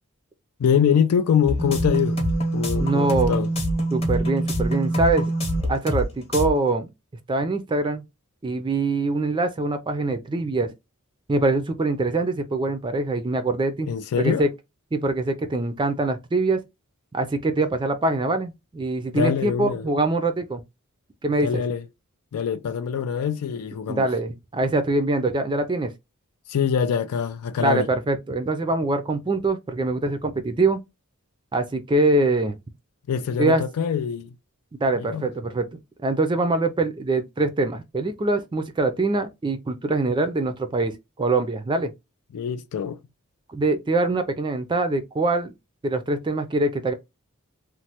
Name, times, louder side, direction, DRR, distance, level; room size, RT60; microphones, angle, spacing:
voice 1, 0.6-2.2 2.5-3.5 13.8-14.4 19.1-19.8 21.4-21.8 22.3-24.1 26.5-27.9 33.1-34.3 35.0-35.3 42.3-43.0, left 7 dB, 85° left, 0.4 m, -24 dB
sound 1, 1.5-6.1 6.3-6.5, right 1 dB, 25° left, 0.9 m, -24 dB
voice 2, 2.8-3.4 3.9-5.3 5.7-6.9 7.3-8.0 8.4-10.7 11.3-13.9 14.2-14.5 14.9-16.6 17.1-20.6 21.2-21.6 23.9-25.9 27.6-30.8 31.5-32.6 33.4-33.6 34.8-41.9 43.5-45.5 45.8-46.9, right 2 dB, 20° right, 0.4 m, -24 dB
3.1 x 2.1 x 2.8 m
head